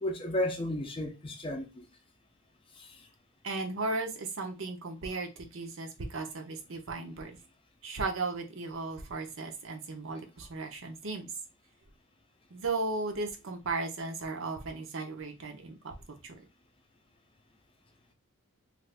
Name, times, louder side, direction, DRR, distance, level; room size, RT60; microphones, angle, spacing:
voice 1, 0.0-1.8 2.8-3.1, left 1 dB, 25° left, 0.5 m, -33 dB
voice 2, 3.4-7.4 7.8-11.3 12.5-15.9 16.2-16.4, right 3 dB, 65° right, 0.7 m, -36 dB
2.6 x 2.4 x 3.3 m
head